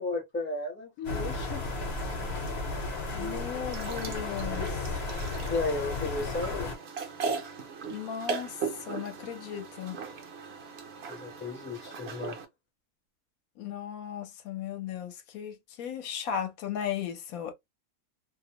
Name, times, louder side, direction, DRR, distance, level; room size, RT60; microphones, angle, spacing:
voice 1, 0.0-1.7 5.5-6.7 11.1-12.4, left 3 dB, 15° left, 0.5 m, -34 dB
sound 1, 1.0-6.7, left 2 dB, 50° left, 0.9 m, -34 dB
voice 2, 3.1-5.0 7.9-10.0 13.6-17.5, left 9 dB, 75° left, 1.0 m, -36 dB
sound 2, 3.7-12.4, right 5 dB, 60° right, 0.7 m, -38 dB
2.6 x 2.1 x 2.8 m
omnidirectional pair, 1.6 m